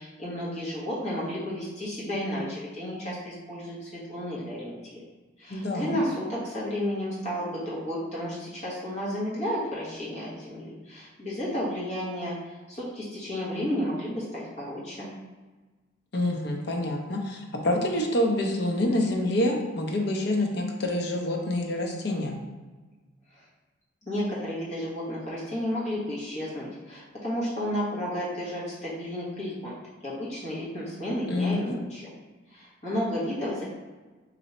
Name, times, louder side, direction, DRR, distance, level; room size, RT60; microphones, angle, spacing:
voice 1, 0.0-5.0 5.4-15.1 24.0-29.7 30.0-32.1 32.5-33.6, equal, 35° left, -8 dB, 1.2 m, -32 dB
voice 2, 5.5-6.0 16.1-22.4 31.3-31.8, left 1 dB, 55° left, 1 dB, 0.5 m, -27 dB
3.0 x 2.6 x 4.2 m, 1.3 s
head